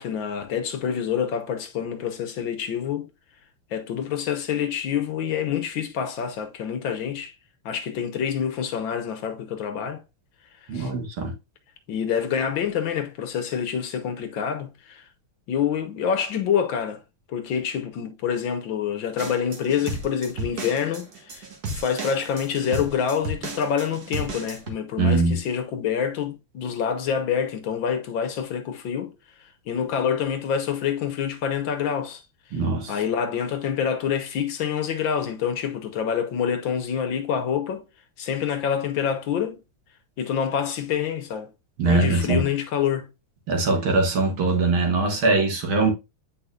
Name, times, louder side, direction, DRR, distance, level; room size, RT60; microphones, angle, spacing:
voice 1, 0.0-3.1 3.7-7.3 7.6-10.0 10.7-10.9 11.9-15.0 15.5-17.0 17.3-29.1 29.7-32.2 32.5-32.6 32.9-37.8 38.2-39.6 40.2-41.5 41.8-43.1, left 8 dB, 65° left, 1.5 m, -27 dB
voice 2, 10.7-11.3 25.0-25.4 32.5-32.9 41.8-42.4 43.5-45.9, right 3 dB, 65° right, 2.3 m, -22 dB
sound 1, 19.2-24.7, right 2 dB, 50° right, 1.7 m, -34 dB
8.4 x 5.0 x 2.3 m
omnidirectional pair, 2.4 m